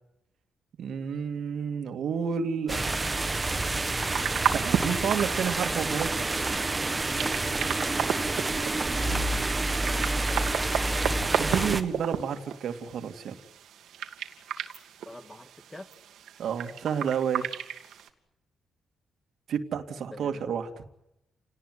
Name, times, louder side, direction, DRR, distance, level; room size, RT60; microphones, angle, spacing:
voice 1, 0.8-2.8 4.5-6.2 11.3-13.4 16.4-17.5 19.5-20.7, right 7 dB, 70° right, 7 dB, 2.4 m, -30 dB
sound 1, 2.7-11.8, right 2 dB, 20° right, 1.6 m, -28 dB
sound 2, 4.1-18.1, right 9 dB, 90° right, 2.5 m, -34 dB
voice 2, 9.2-10.8 15.0-15.9 20.1-20.4, left 1 dB, 15° left, 9 dB, 2.0 m, -46 dB
29.5 x 19.0 x 9.7 m, 0.87 s
cardioid pair, 110°, 0 cm